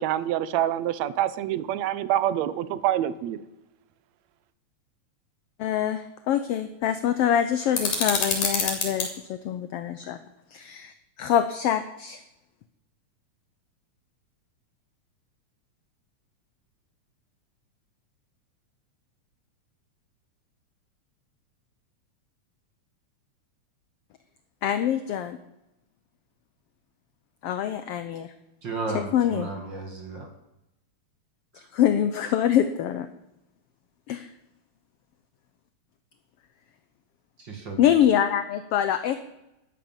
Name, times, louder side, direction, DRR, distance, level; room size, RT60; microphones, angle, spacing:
voice 1, 0.0-3.4, right 12 dB, 75° right, 2.0 m, -26 dB
voice 2, 5.6-10.2 10.5-10.9 11.2-12.2 24.6-25.4 27.4-28.3 28.9-29.5 31.7-33.1 34.1-34.3 37.8-39.1, left 10 dB, 75° left, 1.4 m, -25 dB
sound 1, 7.7-9.1, left 4 dB, 90° left, 4.6 m, -26 dB
voice 3, 28.6-30.3 31.6-31.7 37.4-37.8, right 3 dB, 40° right, 2.2 m, -34 dB
13.5 x 11.5 x 7.3 m
omnidirectional pair, 3.4 m